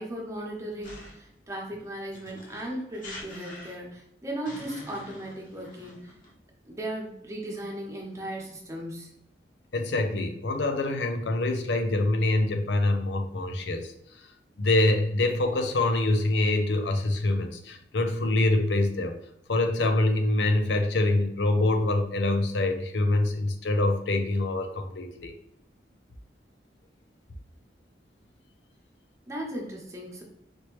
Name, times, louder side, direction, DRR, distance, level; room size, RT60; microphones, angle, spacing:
voice 1, 0.0-6.1 6.6-9.1 29.3-30.2, right 1 dB, 15° right, -2 dB, 1.0 m, -37 dB
sound 1, 0.8-1.3 2.1-4.0 4.4-6.3, left 2 dB, 50° left, 1.1 m, -44 dB
voice 2, 9.7-13.9 14.6-19.2 19.5-25.3, left 2 dB, 85° left, 6 dB, 0.6 m, -25 dB
4.5 x 3.1 x 3.1 m, 0.75 s
head